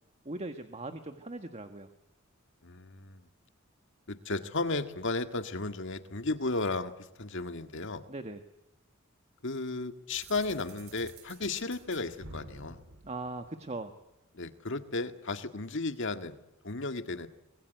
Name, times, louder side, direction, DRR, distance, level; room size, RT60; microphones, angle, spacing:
voice 1, 0.2-1.9 8.1-8.4 13.0-13.9, right 2 dB, 30° right, 8 dB, 1.5 m, -39 dB
voice 2, 2.6-3.2 4.1-6.9 7.2-8.0 9.4-12.8 14.3-16.4 16.6-17.3, left 3 dB, 60° left, 9 dB, 2.0 m, -34 dB
sound 1, 10.1-14.0, right 2 dB, 85° right, 3.7 m, -50 dB
25.0 x 21.5 x 9.2 m, 0.92 s
head